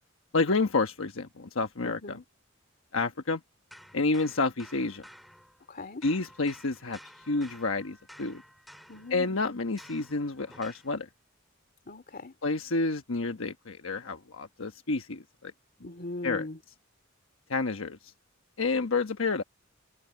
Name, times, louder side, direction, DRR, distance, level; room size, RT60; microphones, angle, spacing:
voice 1, 0.3-2.2 2.9-3.4 3.9-5.1 6.0-8.4 9.1-11.1 12.4-15.5 16.2-16.5 17.5-18.1 18.6-19.4, left 3 dB, 80° left, 1.2 m, -29 dB
voice 2, 1.8-2.2 5.7-6.0 8.9-9.6 11.9-12.3 15.8-16.6, left 2 dB, 45° left, 2.9 m, -40 dB
sound 1, 3.7-5.8 6.0-10.9, equal, ahead, 2.0 m, -53 dB
head